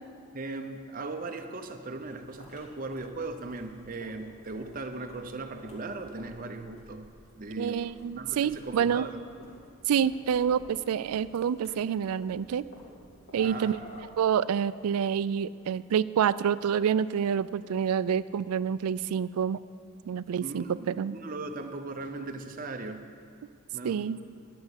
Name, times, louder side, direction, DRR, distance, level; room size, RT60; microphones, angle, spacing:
voice 1, 0.3-7.1 7.4-7.9 8.2-9.2 13.4-13.8 20.4-23.0 23.7-24.1, right 3 dB, 40° right, 6 dB, 0.7 m, -38 dB
sound 1, 2.0-14.0, equal, 60° left, 2.5 m, -52 dB
voice 2, 7.6-9.1 9.9-12.6 13.3-13.8 14.2-19.6 20.1-21.1 23.8-24.2, right 8 dB, 85° right, 17 dB, 0.3 m, -27 dB
11.0 x 6.9 x 8.0 m, 2.2 s
head